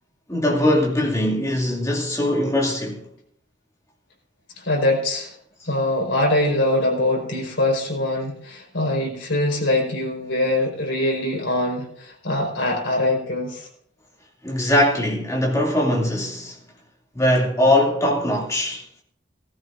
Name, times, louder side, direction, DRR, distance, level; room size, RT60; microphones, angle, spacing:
voice 1, 0.3-3.0 14.4-16.5 17.1-18.8, left 1 dB, 15° left, 2.7 m, -21 dB
voice 2, 4.6-5.3 5.6-13.7, left 1 dB, 85° left, 4.8 m, -23 dB
17.5 x 15.0 x 2.6 m
head